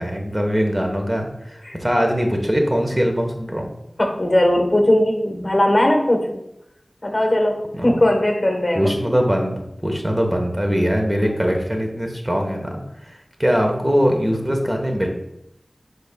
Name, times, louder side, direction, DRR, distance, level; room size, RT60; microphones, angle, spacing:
voice 1, 0.0-3.7 7.7-7.9 8.7-12.8 13.4-15.1, equal, 20° right, 2 dB, 1.0 m, -21 dB
voice 2, 4.0-6.4 7.0-9.2, left 1 dB, 40° left, 3 dB, 1.2 m, -19 dB
10.5 x 4.0 x 2.3 m, 0.81 s
wide cardioid pair, 40°, 0 cm